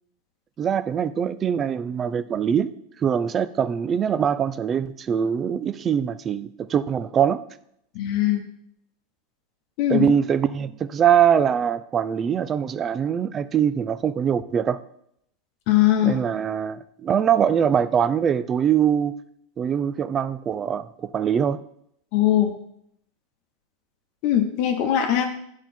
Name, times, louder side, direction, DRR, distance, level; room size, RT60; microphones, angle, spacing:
voice 1, 0.6-2.7 3.0-7.4 9.9-14.8 16.0-19.1 19.6-21.6, right 8 dB, 20° right, 15 dB, 0.3 m, -23 dB
voice 2, 7.9-8.4 9.8-10.1 15.7-16.2 22.1-22.5 24.2-25.3, left 12 dB, 45° left, 4 dB, 0.9 m, -20 dB
10.0 x 4.5 x 4.3 m, 0.71 s
supercardioid pair, 165°, 0 cm